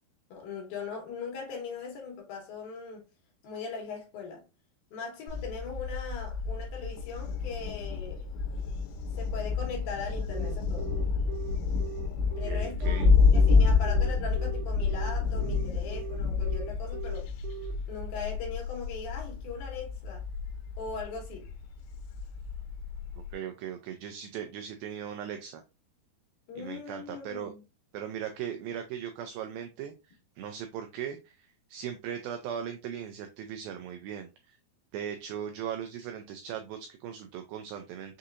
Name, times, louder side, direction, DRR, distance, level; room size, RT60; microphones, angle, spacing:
voice 1, 0.3-3.0 3.4-4.4 4.9-8.3 9.2-10.9 12.4-13.0 13.3-17.3 17.9-20.2 20.8-21.5 26.5-27.6, left 5 dB, 70° left, 2.8 m, -40 dB
Thunder, 5.3-23.3, left 4 dB, 90° left, 2.8 m, -29 dB
Telephone, 10.3-17.7, right 14 dB, 60° right, 2.4 m, -41 dB
voice 2, 12.4-13.1 23.3-25.6 26.6-27.5 27.9-34.6 34.9-38.2, right 9 dB, 90° right, 2.0 m, -38 dB
6.4 x 2.8 x 2.4 m
omnidirectional pair, 4.7 m